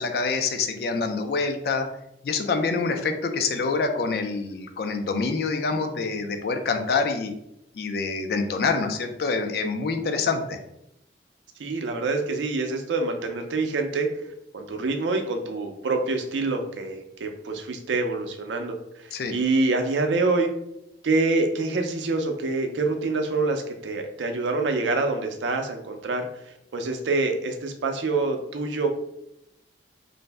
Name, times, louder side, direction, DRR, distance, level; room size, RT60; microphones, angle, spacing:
voice 1, 0.0-1.9 2.2-7.3 7.7-10.6 19.1-19.4, left 4 dB, 60° left, 6 dB, 0.3 m, -26 dB
voice 2, 11.6-14.1 14.5-20.5 21.0-26.3 26.7-28.9, right 3 dB, 90° right, 5 dB, 0.4 m, -26 dB
2.6 x 2.0 x 3.3 m, 0.82 s
head